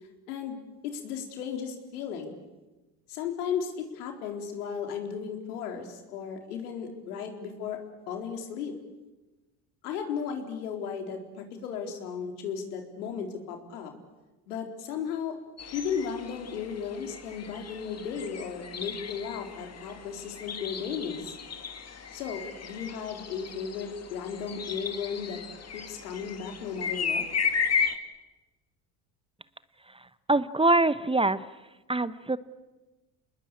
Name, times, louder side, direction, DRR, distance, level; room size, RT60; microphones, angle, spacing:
voice 1, 0.3-2.4 3.1-8.7 9.8-13.9 14.5-15.4 15.7-21.4 22.1-25.4 25.7-27.2, left 7 dB, 85° left, 4 dB, 4.2 m, -35 dB
sound 1, 15.6-28.0, left 6 dB, 35° left, 2.5 m, -35 dB
voice 2, 29.9-31.5 31.9-32.4, right 2 dB, 10° right, 15 dB, 1.0 m, -25 dB
28.5 x 20.5 x 8.7 m, 1.1 s
hypercardioid pair, 75°, 44 cm